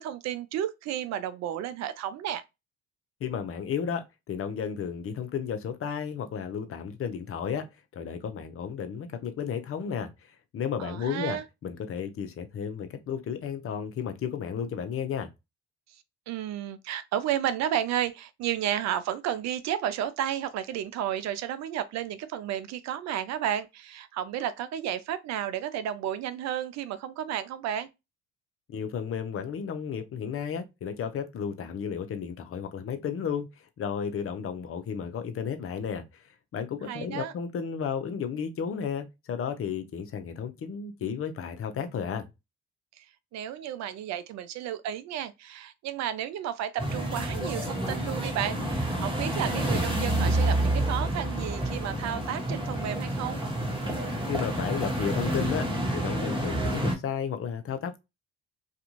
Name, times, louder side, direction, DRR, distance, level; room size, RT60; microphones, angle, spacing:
voice 1, 0.0-2.4 10.8-11.4 16.3-27.9 36.9-37.3 43.0-43.1 43.3-53.4, right 10 dB, 60° right, 0.5 m, -32 dB
voice 2, 3.2-15.3 28.7-33.5 33.8-36.2 36.5-42.3 54.3-58.0, left 7 dB, 45° left, 0.6 m, -33 dB
sound 1, 46.8-56.9, right 1 dB, 15° right, 1.0 m, -29 dB
2.5 x 2.3 x 2.9 m
hypercardioid pair, 60°, 31 cm